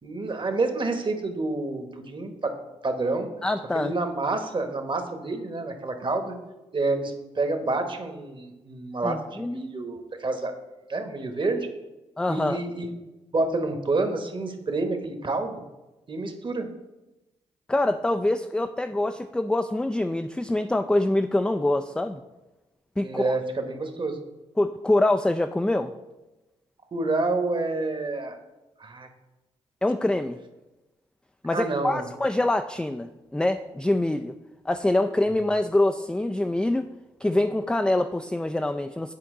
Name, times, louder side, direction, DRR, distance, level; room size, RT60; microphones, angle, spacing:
voice 1, 0.0-2.6 2.8-3.3 3.7-6.4 6.7-10.6 10.9-11.7 12.3-12.9 13.3-15.6 16.1-16.7 23.0-24.2 26.9-28.4 28.8-29.1 31.5-32.1, right 3 dB, 35° right, 6 dB, 1.2 m, -28 dB
voice 2, 3.4-3.9 9.0-9.6 12.2-12.6 17.7-22.2 23.0-23.3 24.6-25.9 29.8-30.4 31.4-34.3 34.7-36.9 37.2-39.1, left 1 dB, 5° left, 8 dB, 0.3 m, -25 dB
8.6 x 4.4 x 3.8 m, 1.0 s
hypercardioid pair, 45°, 14 cm